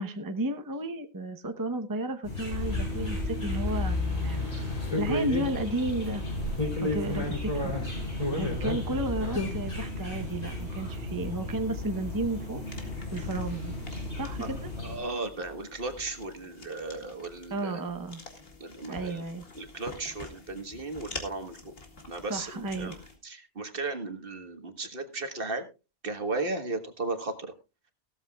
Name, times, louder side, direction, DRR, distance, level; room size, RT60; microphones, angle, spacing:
voice 1, 0.0-4.4 5.0-6.2 6.8-7.7 8.3-12.6 13.1-13.7 14.2-14.7 17.5-18.2 18.9-19.4 22.3-23.0, right 2 dB, 20° right, 6 dB, 0.8 m, -33 dB
sound 1, 2.2-15.0, left 2 dB, 80° left, 7.9 m, -36 dB
sound 2, 2.5-9.8, left 2 dB, 35° left, 3.2 m, -32 dB
sound 3, 12.6-23.2, left 2 dB, 60° left, 2.5 m, -47 dB
voice 2, 14.8-17.8 18.6-19.2 19.5-21.7 22.1-22.9 23.2-25.7 26.0-27.5, right 3 dB, 55° right, 7 dB, 1.7 m, -35 dB
16.5 x 13.5 x 2.3 m, 0.29 s
omnidirectional pair, 1.1 m